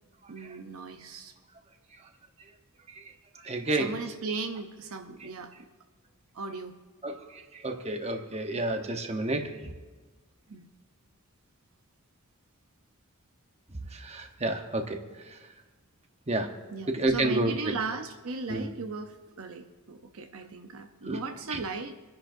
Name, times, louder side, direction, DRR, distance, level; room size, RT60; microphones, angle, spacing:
voice 1, 0.3-1.3 3.8-5.7 6.3-6.8 10.5-10.7 16.7-22.0, right 4 dB, 70° right, 6 dB, 0.8 m, -37 dB
voice 2, 3.4-4.0 7.0-9.5 13.9-15.0 15.3-15.4 16.3-16.5 16.9-17.7 18.5-18.7 21.0-21.2 21.5-21.6, right 2 dB, 30° right, 4 dB, 1.1 m, -30 dB
27.0 x 10.5 x 2.7 m, 1.3 s
head